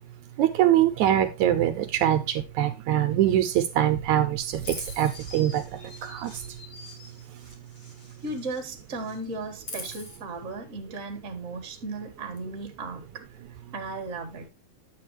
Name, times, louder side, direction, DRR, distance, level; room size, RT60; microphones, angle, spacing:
voice 1, 0.4-5.6 6.0-6.3, right 11 dB, 75° right, 2.1 m, -23 dB
Chirp tweet, 4.6-8.6 8.9-10.2, left 1 dB, 35° left, 3.6 m, -43 dB
voice 2, 8.2-13.2 13.7-14.5, right 3 dB, 30° right, 1.7 m, -36 dB
10.0 x 8.2 x 3.0 m
omnidirectional pair, 3.7 m